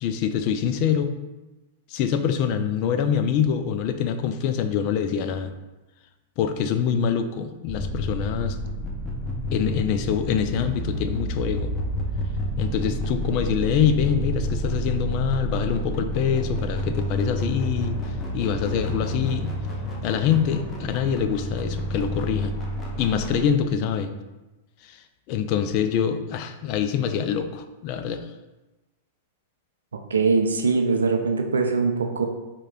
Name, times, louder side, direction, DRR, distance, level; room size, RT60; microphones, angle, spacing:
voice 1, 0.0-1.1 1.9-5.5 6.4-8.6 9.5-11.7 12.6-18.0 18.3-19.5 20.0-22.6 23.0-24.1 24.8-28.3, left 8 dB, 50° left, 9 dB, 0.3 m, -25 dB
sound 1, 7.7-23.4, equal, 25° left, 0.7 m, -29 dB
voice 2, 30.1-32.2, right 4 dB, 90° right, 4 dB, 0.4 m, -22 dB
3.3 x 2.2 x 3.6 m, 1.1 s
hypercardioid pair, 110°, 0 cm